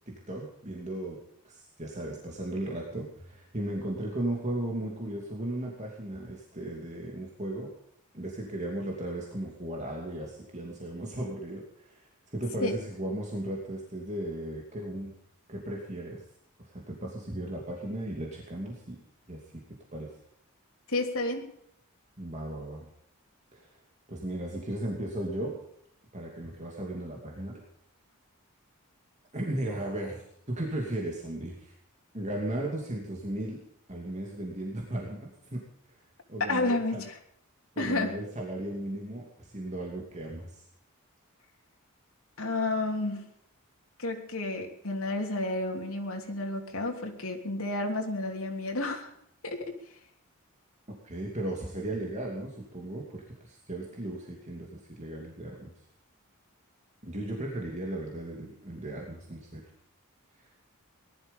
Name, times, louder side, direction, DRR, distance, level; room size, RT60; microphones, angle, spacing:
voice 1, 0.1-7.7 8.1-12.0 12.3-15.1 15.5-16.2 16.6-19.0 19.3-19.6 19.9-20.1 22.2-22.9 23.5-23.7 24.1-25.6 26.1-27.6 29.3-31.7 32.1-33.6 33.9-35.6 36.3-37.0 37.8-40.6 51.0-55.7 57.0-59.6 60.4-60.5, right 1 dB, 30° right, -1 dB, 2.6 m, -36 dB
voice 2, 20.9-21.5 36.5-37.2 37.8-38.2 42.4-43.2 44.0-49.1 49.4-49.7, left 2 dB, 70° left, 2 dB, 3.3 m, -31 dB
19.0 x 12.5 x 5.4 m, 0.72 s
head